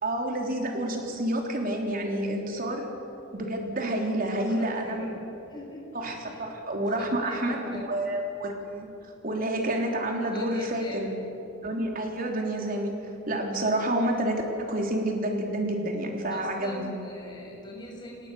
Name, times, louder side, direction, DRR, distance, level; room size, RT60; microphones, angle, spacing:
voice 1, 0.0-2.9 3.3-5.0 6.0-8.9 9.2-11.1 11.6-12.9 13.3-16.9, right 1 dB, 50° right, 1 dB, 3.5 m, -29 dB
voice 2, 4.4-5.1 5.5-5.9 6.2-6.4 6.8-7.8 10.3-11.1 16.3-18.3, left 1 dB, 25° left, -1 dB, 5.9 m, -43 dB
29.5 x 18.5 x 7.0 m, 2.9 s
head